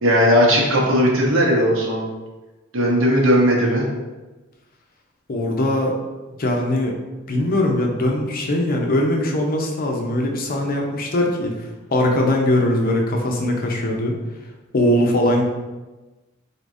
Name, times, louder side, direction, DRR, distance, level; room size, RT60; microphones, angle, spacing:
voice 1, 0.0-2.1 2.7-3.9, equal, 65° right, -2 dB, 0.9 m, -17 dB
voice 2, 5.3-5.9 6.4-7.0 7.3-11.5 11.9-14.2 14.7-15.4, left 1 dB, 45° left, 1 dB, 0.6 m, -20 dB
4.3 x 3.4 x 2.5 m, 1.2 s
head